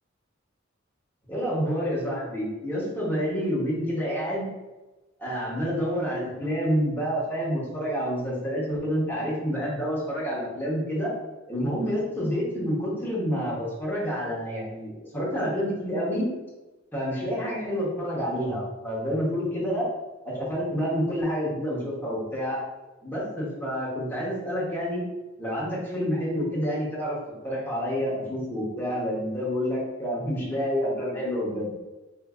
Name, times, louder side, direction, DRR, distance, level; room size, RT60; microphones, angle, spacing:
voice 1, 1.3-4.5 5.2-11.1 11.5-16.3 16.9-19.9 20.2-22.6 23.0-25.0 25.4-27.2 27.4-31.7, equal, 10° left, -7 dB, 0.9 m, -28 dB
3.6 x 2.5 x 2.4 m, 1.1 s
head